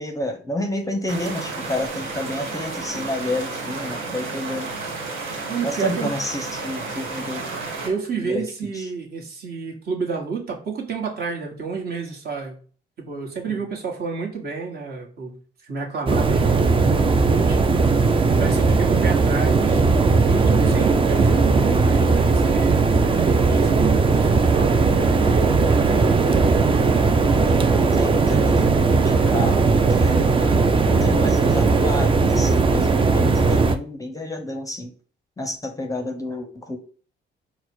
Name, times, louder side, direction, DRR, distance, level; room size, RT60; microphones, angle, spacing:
voice 1, 0.0-4.7 5.6-7.5 8.2-8.4 8.7-8.9 13.5-13.6 26.0-26.1 27.4-34.9 35.4-36.8, left 1 dB, 15° left, 5 dB, 0.6 m, -30 dB
sound 1, 1.1-7.9, right 3 dB, 85° right, 1.2 m, -32 dB
voice 2, 5.5-6.1 7.8-12.6 13.0-19.8 20.3-25.2, right 5 dB, 50° right, 0 dB, 1.3 m, -30 dB
sound 2, 16.1-33.7, right 4 dB, 25° right, 0.4 m, -18 dB
4.2 x 2.1 x 4.3 m, 0.42 s
cardioid pair, 90°, 20 cm